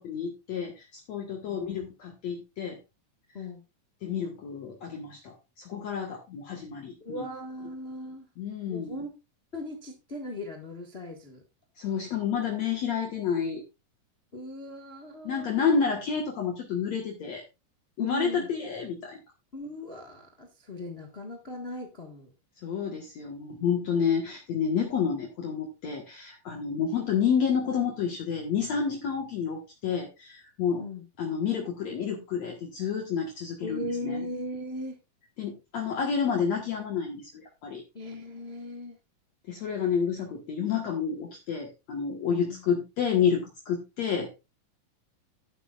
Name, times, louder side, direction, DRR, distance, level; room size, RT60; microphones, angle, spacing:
voice 1, 0.0-2.8 4.0-7.2 8.4-9.0 11.8-13.6 15.2-17.4 18.0-19.2 22.6-30.8 31.2-34.2 35.4-37.3 37.6-37.8 39.5-44.3, left 7 dB, 55° left, 1 dB, 2.4 m, -29 dB
voice 2, 7.0-8.3 8.7-9.1 9.5-11.4 14.3-15.8 18.0-18.5 19.5-22.3 26.7-27.0 30.8-31.0 33.6-35.0 37.9-39.0 42.3-42.7, left 1 dB, 30° left, 2 dB, 1.1 m, -38 dB
11.5 x 11.0 x 2.5 m, 0.26 s
omnidirectional pair, 4.1 m